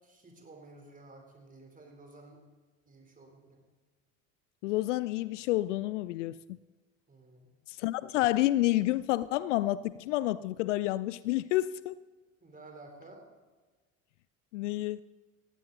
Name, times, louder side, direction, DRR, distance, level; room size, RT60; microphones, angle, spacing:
voice 1, 0.0-2.4 2.9-3.6 7.1-7.5 12.4-13.2, right 2 dB, 20° right, 3.8 m, -53 dB
voice 2, 4.6-6.3 7.7-11.9 14.5-15.0, left 16 dB, 65° left, 0.5 m, -29 dB
19.0 x 15.5 x 4.1 m
figure-of-eight pair, 65°, 40 cm